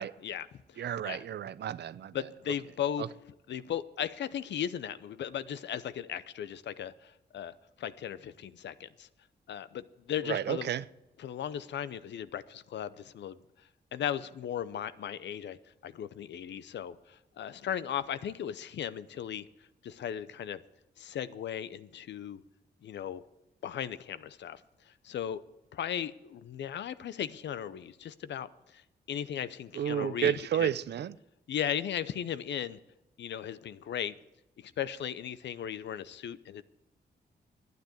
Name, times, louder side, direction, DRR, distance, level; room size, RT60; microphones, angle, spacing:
voice 1, 0.0-1.2 2.1-3.1 3.5-9.1 9.5-10.7 11.2-13.4 13.9-15.6 15.8-19.5 19.8-20.6 21.0-22.4 22.8-23.2 23.6-24.6 24.9-25.4 25.7-30.7 31.5-32.8 33.2-34.1 34.6-36.6, left 9 dB, 80° left, 0.6 m, -37 dB
voice 2, 0.8-2.2 3.0-3.1 10.2-10.9 29.7-31.2, right 9 dB, 70° right, 0.5 m, -31 dB
11.5 x 9.4 x 7.7 m
cardioid pair, 75°, 18 cm